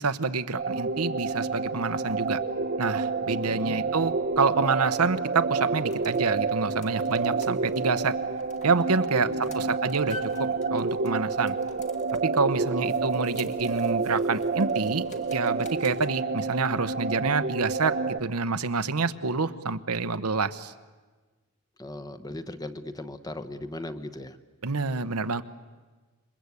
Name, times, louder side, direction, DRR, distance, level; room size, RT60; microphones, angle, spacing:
voice 1, 0.0-2.4 2.8-8.2 8.6-11.6 12.2-15.0 15.3-20.7 24.6-25.4, right 4 dB, 85° right, 10 dB, 1.0 m, -27 dB
sound 1, 0.5-18.2, right 4 dB, 45° right, 0.8 m, -29 dB
voice 2, 3.4-4.1 9.2-9.8 12.7-13.0 21.8-24.4, left 1 dB, 15° left, 8 dB, 0.9 m, -39 dB
sound 2, 5.6-16.1, left 4 dB, 35° left, 1.9 m, -49 dB
28.0 x 23.5 x 8.4 m, 1.3 s
head